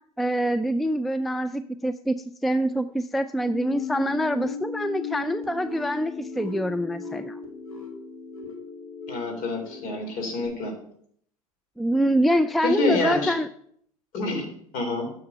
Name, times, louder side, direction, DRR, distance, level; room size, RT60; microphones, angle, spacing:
voice 1, 0.0-7.4 11.8-13.5, equal, ahead, 12 dB, 0.3 m, -25 dB
sound 1, 3.4-10.5, left 6 dB, 85° left, 2.5 m, -36 dB
voice 2, 9.1-10.7 12.6-13.3 14.1-15.1, left 3 dB, 50° left, 4 dB, 3.5 m, -27 dB
9.9 x 7.0 x 5.4 m, 0.66 s
figure-of-eight pair, 80°, 18 cm